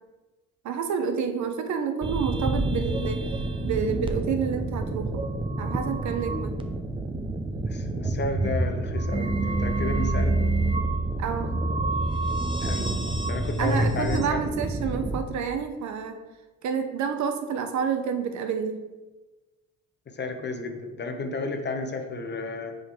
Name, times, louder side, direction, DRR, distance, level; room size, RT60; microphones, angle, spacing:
voice 1, 0.6-3.2 3.6-5.2 5.6-6.5 11.2-11.8 13.6-16.2 16.6-18.8, right 6 dB, 70° right, 7 dB, 0.8 m, -29 dB
sound 1, 2.0-15.2, right 2 dB, 15° right, 0.6 m, -27 dB
voice 2, 7.7-10.4 12.6-14.4 20.1-22.8, left 3 dB, 35° left, 5 dB, 0.8 m, -32 dB
5.0 x 4.2 x 4.4 m, 1.2 s
cardioid pair, 90°, 30 cm